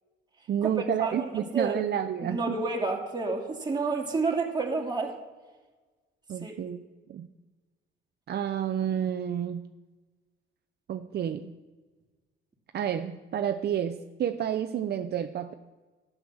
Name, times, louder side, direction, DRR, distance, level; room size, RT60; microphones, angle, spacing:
voice 1, 0.5-2.6 6.3-6.8 7.1-7.3 8.3-9.6 10.9-11.5 12.7-15.5, right 9 dB, 55° right, 7 dB, 0.6 m, -30 dB
voice 2, 1.0-5.2 6.4-6.5, right 3 dB, 20° right, 0 dB, 2.5 m, -30 dB
11.5 x 8.0 x 6.2 m, 1.3 s
cardioid pair, 90°, 20 cm